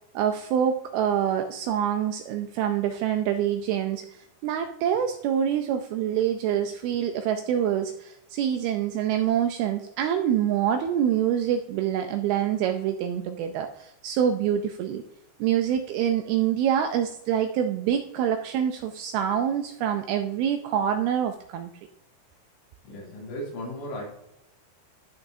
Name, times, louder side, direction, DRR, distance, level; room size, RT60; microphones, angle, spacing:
voice 1, 0.1-15.0 15.4-21.7, right 9 dB, 80° right, 6 dB, 2.2 m, -26 dB
voice 2, 22.8-24.1, equal, 90° left, -3 dB, 5.0 m, -35 dB
13.0 x 6.3 x 2.7 m, 0.79 s
omnidirectional pair, 5.0 m